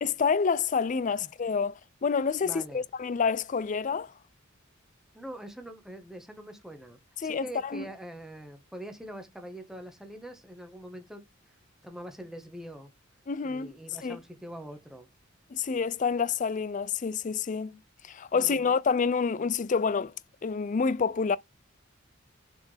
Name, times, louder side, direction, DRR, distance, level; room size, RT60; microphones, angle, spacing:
voice 1, 0.0-4.1 7.2-7.8 13.3-13.7 14.0-14.2 15.5-17.8 18.0-20.1 20.4-21.4, left 5 dB, 40° left, 0.4 m, -28 dB
voice 2, 2.4-2.8 5.1-11.2 11.8-12.9 13.4-15.1 18.3-18.8, right 1 dB, ahead, 1.4 m, -44 dB
6.9 x 4.3 x 3.4 m
head